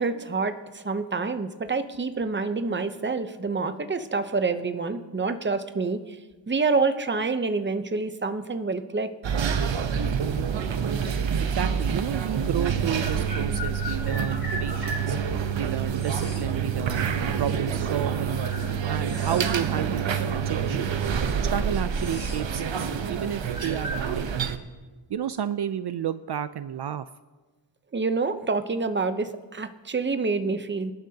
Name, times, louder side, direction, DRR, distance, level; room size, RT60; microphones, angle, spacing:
voice 1, 0.0-6.2 6.5-9.1 27.9-30.9, right 4 dB, 25° right, 9 dB, 0.8 m, -27 dB
sound 1, 9.2-24.6, right 7 dB, 80° right, 0.9 m, -27 dB
voice 2, 11.4-15.2 15.6-17.1 17.4-18.4 18.9-20.9 21.4-24.4 25.1-27.1, right 9 dB, 60° right, 13 dB, 0.5 m, -31 dB
sound 2, 11.8-11.9 13.0-15.1 16.0-16.5 17.6-17.7 18.3-19.7 20.0-20.2 21.0-21.1 21.4-22.5 22.7-23.0 23.5-24.1, left 2 dB, 20° left, 2.4 m, -37 dB
25.0 x 11.5 x 2.8 m, 1.3 s
wide cardioid pair, 100°, 45 cm